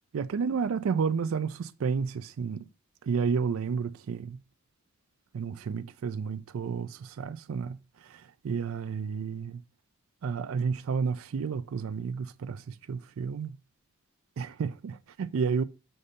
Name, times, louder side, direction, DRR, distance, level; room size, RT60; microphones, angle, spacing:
voice 1, 0.1-2.7 3.0-4.4 5.3-7.8 8.0-9.6 10.2-13.5 14.4-15.6, right 5 dB, 70° right, 0.4 m, -31 dB
6.6 x 2.6 x 5.4 m
head